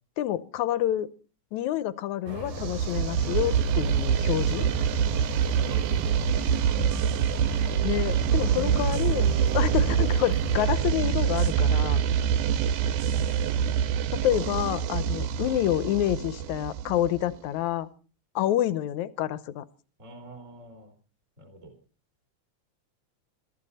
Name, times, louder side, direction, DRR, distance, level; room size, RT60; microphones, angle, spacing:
voice 1, 0.2-1.1 1.5-4.7 7.8-9.3 9.5-12.0 14.1-17.9 18.4-19.7, left 12 dB, 70° left, 16 dB, 2.1 m, -28 dB
sound 1, 2.3-10.7, right 4 dB, 55° right, 4.6 m, -39 dB
sound 2, 2.5-17.3, right 8 dB, 75° right, 2.4 m, -25 dB
voice 2, 5.2-6.9 8.6-9.3 9.5-9.7 12.6-13.8 20.0-20.9 21.4-21.7, equal, 20° right, 6 dB, 4.2 m, -44 dB
23.0 x 14.0 x 4.2 m, 0.38 s
omnidirectional pair, 3.6 m